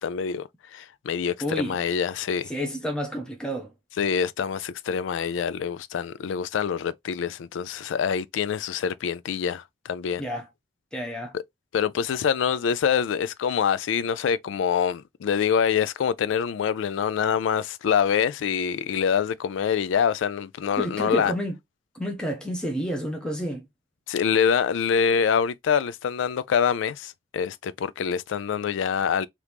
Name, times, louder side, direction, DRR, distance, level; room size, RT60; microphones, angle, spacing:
voice 1, 0.0-2.5 4.0-10.2 11.3-11.4 11.7-21.3 24.1-29.3, left 7 dB, 85° left, 0.3 m, -25 dB
voice 2, 1.4-1.8 2.5-3.7 10.2-10.5 10.9-11.3 20.8-21.6 21.9-23.7, equal, 5° left, 0.6 m, -30 dB
2.9 x 2.5 x 3.4 m
head